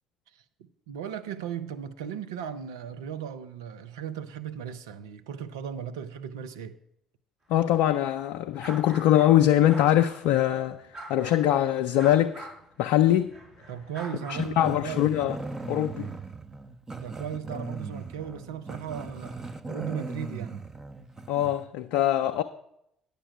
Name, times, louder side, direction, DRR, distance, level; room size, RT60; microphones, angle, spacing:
voice 1, 0.3-6.8 13.7-15.1 16.9-20.6, right 8 dB, 80° right, 0.5 m, -37 dB
voice 2, 7.5-12.5 12.8-13.3 14.3-15.4 15.7-16.1 21.3-22.4, left 12 dB, 70° left, 0.4 m, -23 dB
sound 1, 8.6-9.3 9.6-10.6 10.9-11.5 12.0-16.2, right 2 dB, 45° right, 4.7 m, -45 dB
Growling, 14.3-21.7, right 3 dB, 25° right, 0.9 m, -39 dB
9.9 x 6.7 x 6.1 m
hypercardioid pair, 50°, 2 cm